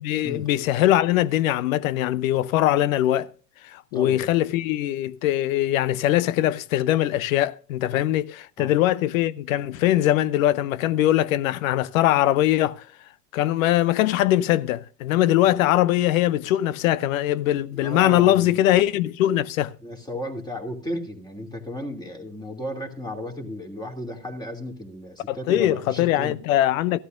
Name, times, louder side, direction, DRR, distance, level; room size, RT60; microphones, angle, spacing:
voice 1, 0.0-3.3 3.6-12.8 13.3-19.7 25.3-27.0, left 13 dB, 75° left, 0.7 m, -21 dB
voice 2, 17.7-18.6 19.8-26.4, left 1 dB, 10° left, 2.7 m, -34 dB
14.5 x 12.5 x 2.6 m
hypercardioid pair, 80°, 42 cm